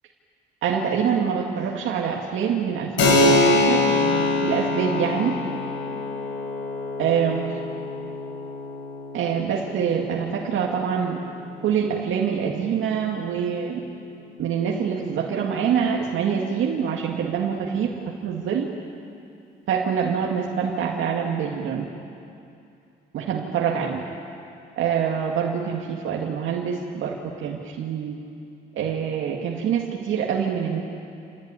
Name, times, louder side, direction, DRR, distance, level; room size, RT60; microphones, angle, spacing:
voice 1, 0.6-5.4 7.0-7.6 9.1-11.2 11.6-13.8 14.4-17.9 18.2-18.7 19.7-21.8 23.1-24.0 24.8-27.1 27.4-28.2 28.8-30.8, right 7 dB, 80° right, -1 dB, 2.1 m, -25 dB
Keyboard (musical), 3.0-13.2, left 2 dB, 85° left, 5.5 m, -25 dB
28.0 x 16.5 x 9.8 m, 2.6 s
cardioid pair, 90°, 20 cm